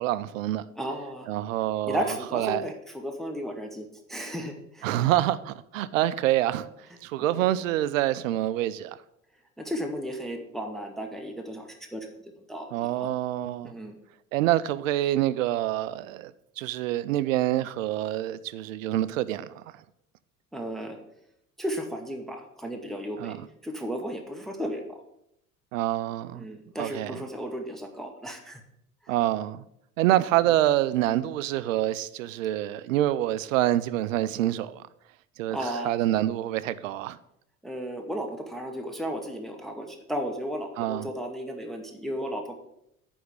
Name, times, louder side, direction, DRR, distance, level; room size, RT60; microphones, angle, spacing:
voice 1, 0.0-0.6 1.3-2.6 4.8-6.7 7.0-9.0 12.7-13.7 14.3-16.3 16.6-19.5 23.2-23.4 25.7-26.4 26.8-27.2 29.1-29.6 30.0-34.8 35.4-37.2 40.8-41.1, right 14 dB, 65° right, 0.5 m, -26 dB
voice 2, 0.8-1.3 1.9-4.9 7.2-7.4 9.6-13.1 13.6-14.0 20.5-21.0 21.6-23.3 23.6-25.0 26.3-28.6 35.5-35.9 37.6-42.5, equal, ahead, 1.0 m, -34 dB
9.5 x 3.5 x 6.4 m
figure-of-eight pair, 65°, 41 cm